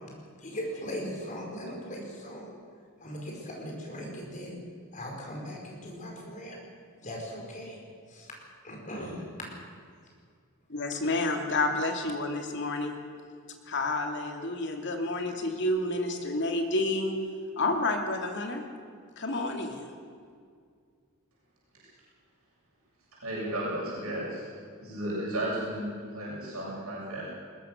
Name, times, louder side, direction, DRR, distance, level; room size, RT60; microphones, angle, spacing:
voice 1, 0.4-2.6 3.0-4.6 4.9-6.6 7.0-7.8 8.1-8.3 8.6-9.2, equal, 35° left, -1 dB, 5.3 m, -39 dB
voice 2, 10.7-12.9 13.7-17.1 17.6-18.6 19.2-19.9, left 2 dB, 55° left, 3 dB, 2.6 m, -29 dB
voice 3, 23.1-24.5 24.8-27.2, right 1 dB, 80° right, -6 dB, 7.5 m, -34 dB
21.5 x 20.0 x 6.7 m, 2.1 s
head